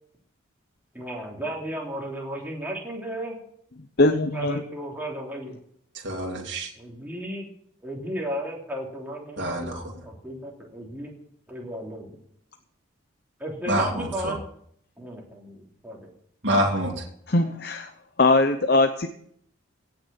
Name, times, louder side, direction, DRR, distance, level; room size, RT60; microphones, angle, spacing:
voice 1, 0.9-3.4 4.3-5.6 6.8-7.5 7.8-11.2 11.5-12.2 13.4-14.4 15.0-16.1, right 1 dB, 10° right, -2 dB, 3.3 m, -34 dB
voice 2, 4.0-4.6 17.3-17.9 18.2-19.1, left 2 dB, 50° left, 7 dB, 0.8 m, -20 dB
voice 3, 5.9-6.7 9.4-9.9 13.7-14.3 16.4-17.0, right 1 dB, 60° right, -1 dB, 2.7 m, -26 dB
17.0 x 6.7 x 7.2 m, 0.67 s
head